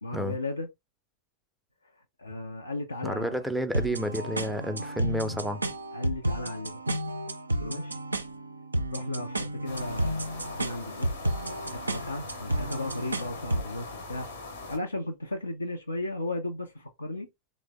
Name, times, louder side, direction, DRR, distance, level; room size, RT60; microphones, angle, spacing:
voice 1, 0.0-0.7 2.2-3.4 4.4-4.6 5.9-6.8 7.6-8.0 8.9-11.2 11.7-14.3 14.7-17.3, left 2 dB, 80° left, 0.4 m, -35 dB
voice 2, 3.0-5.6, equal, ahead, 0.5 m, -31 dB
sound 1, 3.7-13.7, right 1 dB, 80° right, 0.4 m, -32 dB
sound 2, 9.6-14.8, left 3 dB, 65° left, 0.8 m, -41 dB
3.1 x 2.0 x 3.4 m
figure-of-eight pair, 90°, 0 cm